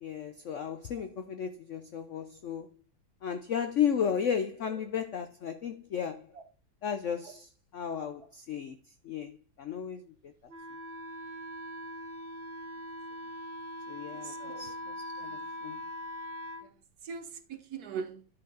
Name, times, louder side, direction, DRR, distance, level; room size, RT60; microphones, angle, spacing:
voice 1, 0.0-2.7 3.2-6.3 6.8-8.8 9.0-10.1 13.9-15.8, left 8 dB, 70° left, 0.7 m, -34 dB
Wind instrument woodwind instrument, 10.5-16.7, left 1 dB, 75° right, 2.0 m, -41 dB
voice 2, 14.1-14.7 15.2-15.4 16.6-16.7 17.0-18.3, right 6 dB, 60° right, 1.2 m, -41 dB
11.0 x 4.5 x 3.9 m
omnidirectional pair, 2.1 m